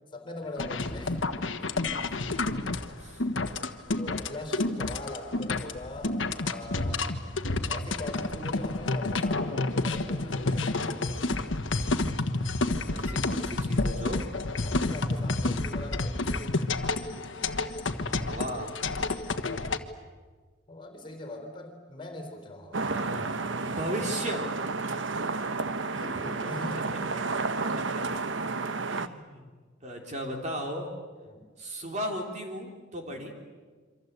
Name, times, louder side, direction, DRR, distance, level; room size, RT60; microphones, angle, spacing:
voice 1, 0.1-1.2 2.6-2.8 4.0-7.0 7.7-11.0 14.6-17.0 20.7-22.9 25.0-25.1 25.9-26.9 31.3-31.5 33.0-33.3, left 1 dB, 25° left, 5 dB, 3.8 m, -41 dB
sound 1, 0.6-19.8, left 2 dB, 80° left, 1.4 m, -29 dB
voice 2, 12.9-14.3 18.2-18.8 22.8-24.5 24.8-24.9 27.1-27.2 27.5-27.9 28.9-29.5 29.8-30.9 31.6-33.3, equal, 35° right, 2 dB, 3.5 m, -36 dB
sound 2, 22.7-29.1, right 3 dB, 75° right, 1.1 m, -31 dB
27.5 x 25.0 x 8.2 m, 1.5 s
head